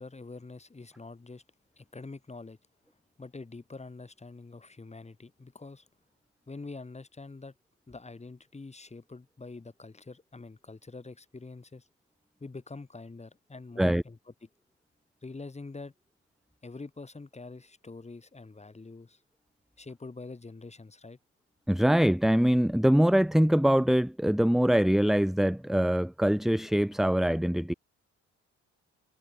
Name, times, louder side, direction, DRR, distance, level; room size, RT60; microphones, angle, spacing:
voice 1, 0.0-1.4 1.8-2.6 3.2-5.9 6.5-7.5 7.9-11.9 12.4-14.2 15.2-15.9 16.6-19.2 19.8-21.2, left 3 dB, 20° left, 4.4 m, -45 dB
voice 2, 21.7-27.7, equal, ahead, 1.3 m, -23 dB
cardioid pair, 90°, 30 cm